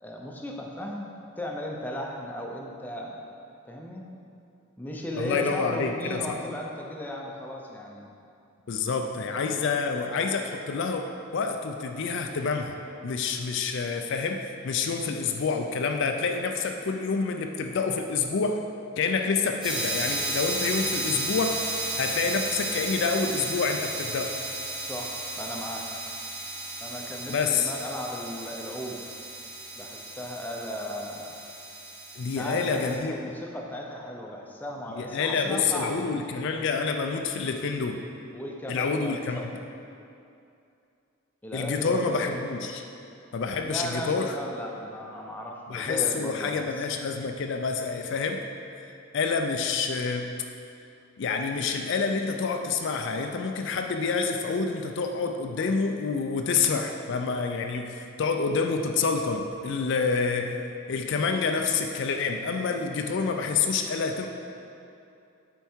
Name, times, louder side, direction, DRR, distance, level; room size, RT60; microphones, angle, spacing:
voice 1, 0.0-1.1 1.4-3.2 3.7-4.1 4.8-8.1 24.8-25.9 26.8-29.0 29.8-31.3 32.3-36.0 38.3-39.5 41.4-42.4 43.6-46.9, equal, 10° left, -1 dB, 0.6 m, -36 dB
voice 2, 5.1-6.4 8.7-11.0 11.3-12.8 13.0-18.6 19.0-21.6 22.0-24.3 27.3-27.7 32.2-33.2 35.0-38.0 38.7-39.4 41.5-42.8 43.3-44.3 45.7-48.4 49.1-50.3 51.2-60.6 60.9-64.3, left 5 dB, 55° left, 4 dB, 0.4 m, -28 dB
sound 1, 19.6-32.9, right 2 dB, 20° right, 1.7 m, -34 dB
8.1 x 4.5 x 4.4 m, 2.6 s
head